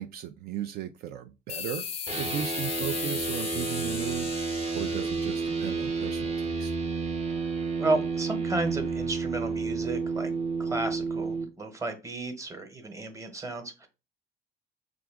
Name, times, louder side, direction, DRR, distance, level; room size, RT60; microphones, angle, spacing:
voice 1, 0.0-1.9 2.1-6.8, right 11 dB, 65° right, 0.4 m, -36 dB
sound 1, 1.5-6.7, left 7 dB, 35° left, 0.4 m, -37 dB
sound 2, 2.1-11.4, right 4 dB, 40° right, 0.9 m, -31 dB
voice 2, 7.8-10.3 10.6-13.9, right 2 dB, 20° right, 1.0 m, -33 dB
4.7 x 2.4 x 3.5 m
cardioid pair, 110°, 17 cm